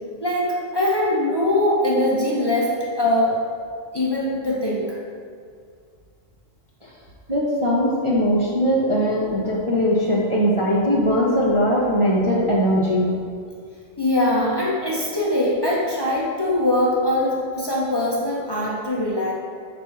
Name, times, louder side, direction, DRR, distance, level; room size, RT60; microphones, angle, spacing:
voice 1, 0.2-3.4 3.9-5.0 14.0-19.3, left 1 dB, 25° left, -6 dB, 0.8 m, -22 dB
voice 2, 7.3-13.1, equal, 30° right, -7 dB, 0.7 m, -20 dB
4.4 x 4.2 x 5.7 m, 2.1 s
omnidirectional pair, 1.2 m